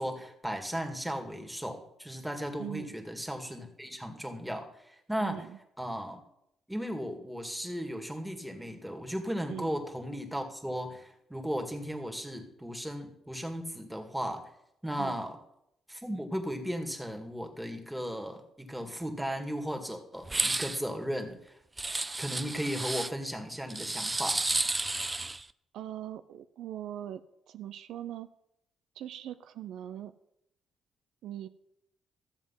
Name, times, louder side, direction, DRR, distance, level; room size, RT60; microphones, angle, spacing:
voice 1, 0.0-5.4 5.8-6.2 6.7-14.5 14.8-15.4 15.9-21.6 22.2-24.4, equal, 5° right, 4 dB, 2.0 m, -36 dB
voice 2, 5.2-5.6 9.5-9.7 15.0-15.2 25.7-28.3 29.0-30.1 31.2-31.5, right 11 dB, 80° right, 11 dB, 0.6 m, -41 dB
sound 1, 20.2-20.8 21.8-23.1 23.7-25.4, right 2 dB, 20° right, 0.4 m, -31 dB
13.5 x 7.4 x 5.7 m, 0.79 s
cardioid pair, 90°, 0 cm